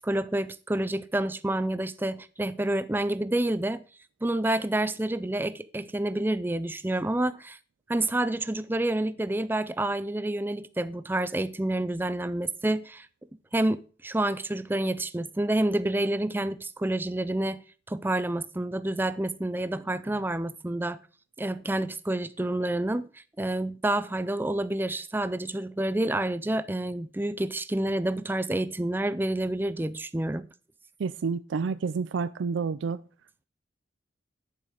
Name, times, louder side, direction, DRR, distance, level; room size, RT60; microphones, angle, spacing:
voice 1, 0.0-3.8 4.2-7.6 7.9-13.1 13.5-17.6 17.9-21.0 21.4-30.5, right 1 dB, 10° right, 0.4 m, -28 dB
voice 2, 31.0-33.0, right 5 dB, 85° right, 0.4 m, -29 dB
10.5 x 7.2 x 4.8 m
head